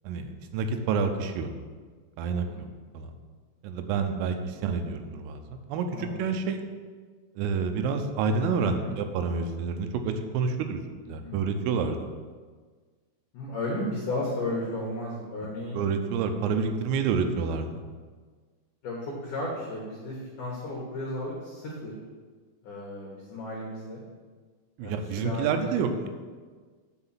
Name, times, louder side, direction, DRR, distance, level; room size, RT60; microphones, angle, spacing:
voice 1, 0.1-1.5 2.2-2.7 3.0-3.1 3.6-6.6 7.4-10.8 11.1-12.1 15.7-17.8 24.8-26.1, right 5 dB, 90° right, 7 dB, 3.5 m, -28 dB
voice 2, 2.2-2.7 5.9-6.4 8.6-8.9 11.0-11.4 13.3-15.8 18.8-21.9 22.6-24.0 24.8-26.1, left 1 dB, 85° left, -3 dB, 1.7 m, -34 dB
9.9 x 4.9 x 7.3 m, 1.5 s
omnidirectional pair, 5.8 m